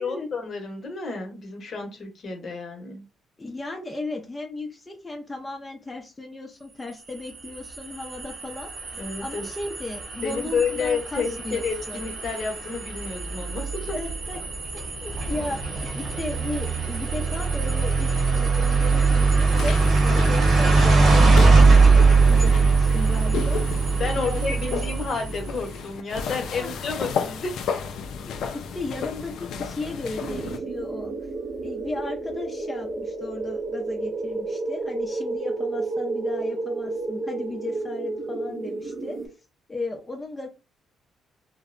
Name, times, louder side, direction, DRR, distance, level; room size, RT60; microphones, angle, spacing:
voice 1, 0.0-3.0 9.0-9.5 10.2-13.9 24.0-27.6, left 4 dB, 55° left, 3 dB, 0.8 m, -30 dB
voice 2, 3.4-12.0 13.9-14.4 14.7-15.6 16.0-23.8 24.2-24.7 26.5-27.1 28.2-31.1 31.6-39.2 39.7-40.5, left 2 dB, 20° left, 1 dB, 0.5 m, -35 dB
sound 1, 7.1-25.6, right 4 dB, 75° right, 1.0 m, -21 dB
sound 2, 19.5-30.6, left 6 dB, 80° left, 0.3 m, -33 dB
sound 3, 30.2-39.3, right 3 dB, 45° right, 0.6 m, -31 dB
2.6 x 2.0 x 2.5 m, 0.30 s
cardioid pair, 90°, 0 cm